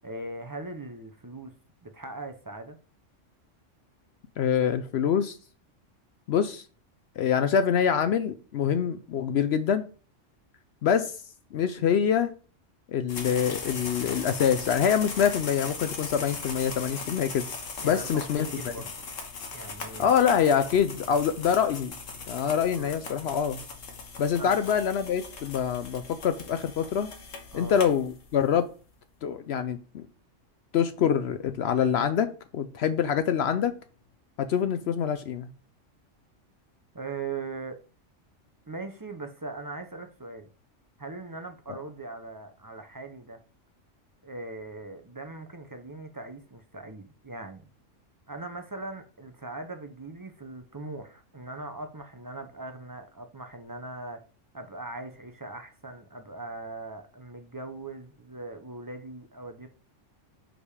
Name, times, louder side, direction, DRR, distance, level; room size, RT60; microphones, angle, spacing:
voice 1, 0.0-1.5 1.8-2.8 17.8-19.0 19.5-20.2 22.7-22.9 24.4-24.6 27.5-27.8 36.9-37.8 38.7-40.5 41.0-43.4 44.2-47.7 48.3-54.2 54.5-59.7, right 3 dB, 30° right, 0.4 m, -40 dB
voice 2, 4.4-5.4 6.3-6.6 7.2-9.8 10.8-11.1 11.5-12.3 12.9-17.4 17.8-18.5 20.0-21.9 22.3-23.6 24.2-27.1 27.5-28.7 29.2-30.0 30.7-33.7 34.4-35.5 41.7-41.8, left 8 dB, 65° left, 0.7 m, -25 dB
sound 1, 13.1-28.5, left 4 dB, 85° left, 1.5 m, -39 dB
5.1 x 5.1 x 4.9 m
omnidirectional pair, 1.3 m